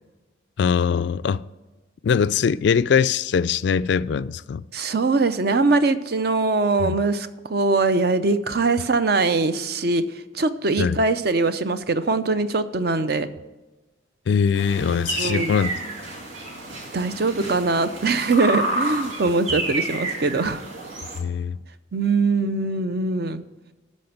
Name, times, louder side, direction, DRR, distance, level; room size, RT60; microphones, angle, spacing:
voice 1, 0.6-1.4 2.0-4.6 6.8-7.0 10.8-11.0 14.3-15.7 21.2-21.6, left 6 dB, 65° left, 0.3 m, -21 dB
voice 2, 4.7-10.0 10.3-13.3 14.9-15.5 16.9-20.6 21.9-23.4, right 3 dB, 55° right, 0.6 m, -22 dB
sound 1, 14.5-21.2, right 2 dB, 90° right, 2.5 m, -30 dB
12.5 x 4.3 x 7.9 m
head